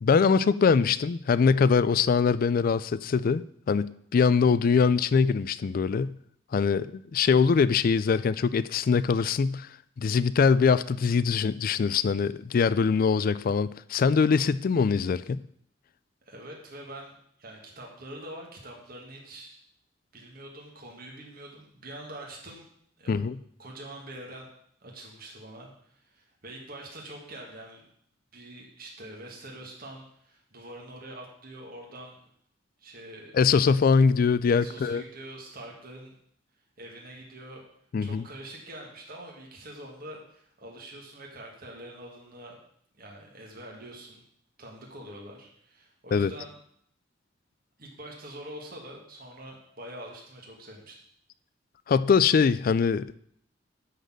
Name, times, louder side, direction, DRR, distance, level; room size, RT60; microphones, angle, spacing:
voice 1, 0.0-6.2 6.5-9.7 10.0-15.4 23.1-23.4 33.3-35.0 37.9-38.2 46.1-46.3 51.9-53.2, left 5 dB, 50° left, 16 dB, 0.3 m, -23 dB
voice 2, 16.3-19.6 20.1-22.7 23.0-23.2 23.6-24.5 24.8-27.8 28.3-32.2 32.8-33.3 34.5-36.1 36.8-37.7 38.0-42.6 43.0-44.2 44.6-46.6 47.8-51.0, right 1 dB, 50° right, -1 dB, 1.8 m, -44 dB
10.0 x 4.1 x 7.6 m, 0.66 s
head